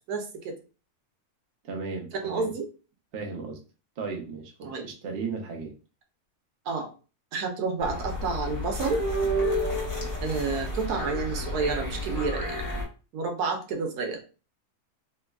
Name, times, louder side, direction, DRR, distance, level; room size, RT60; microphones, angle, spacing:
voice 1, 0.1-0.5 2.2-2.7 4.6-4.9 6.7-6.9 7.3-9.0 10.2-12.6 13.1-14.2, right 4 dB, 90° right, 4 dB, 1.3 m, -30 dB
voice 2, 1.6-2.5 3.1-3.6 4.0-5.7, right 4 dB, 50° right, 2 dB, 0.8 m, -35 dB
sound 1, 7.8-12.8, equal, 25° left, 0.8 m, -30 dB
3.6 x 3.0 x 2.3 m, 0.35 s
omnidirectional pair, 1.6 m